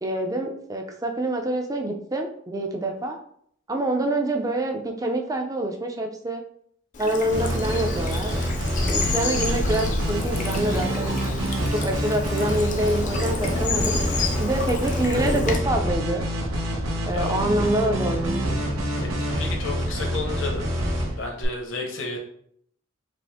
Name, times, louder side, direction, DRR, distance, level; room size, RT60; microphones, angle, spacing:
voice 1, 0.0-3.2 3.7-6.4 7.0-8.4 8.9-11.1 11.7-14.0 14.4-16.2 17.0-18.5, right 1 dB, 15° right, 4 dB, 0.4 m, -26 dB
Bird vocalization bird call bird song / Stream, 6.9-15.6, left 3 dB, 35° left, 0.5 m, -29 dB
sound 1, 7.3-21.4, equal, 90° right, 0.9 m, -27 dB
voice 2, 19.4-20.7 21.2-22.2, left 3 dB, 70° left, 0 dB, 0.9 m, -32 dB
5.0 x 2.0 x 3.5 m, 0.66 s
head